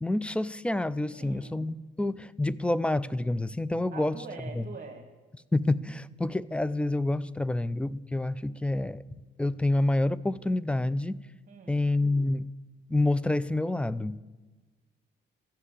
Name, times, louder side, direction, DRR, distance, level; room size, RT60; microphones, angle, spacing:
voice 1, 0.0-4.1 5.5-9.0 9.4-11.1 11.7-12.4 12.9-14.2, left 2 dB, 5° left, 0.3 m, -28 dB
voice 2, 1.1-1.6 3.9-5.1 11.5-11.9, right 4 dB, 45° right, 1.6 m, -44 dB
13.0 x 7.5 x 8.1 m
cardioid pair, 90°, 20 cm